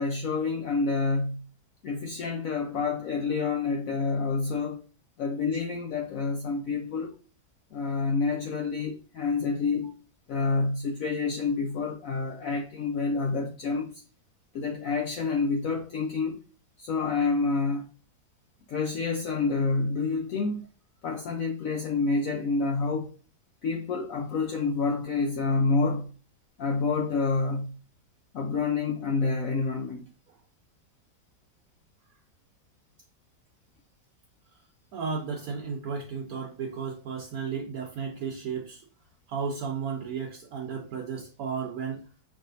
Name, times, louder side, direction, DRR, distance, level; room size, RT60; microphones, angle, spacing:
voice 1, 0.0-1.5 1.8-4.8 5.2-7.1 7.7-9.9 10.3-14.0 14.5-16.4 16.8-17.9 18.7-20.7 21.0-23.1 23.6-26.1 26.6-27.8 28.3-30.1, left 4 dB, 70° left, 0.8 m, -28 dB
voice 2, 34.9-38.8 39.3-42.1, right 6 dB, 70° right, 1.0 m, -34 dB
5.4 x 3.5 x 2.7 m
omnidirectional pair, 1.8 m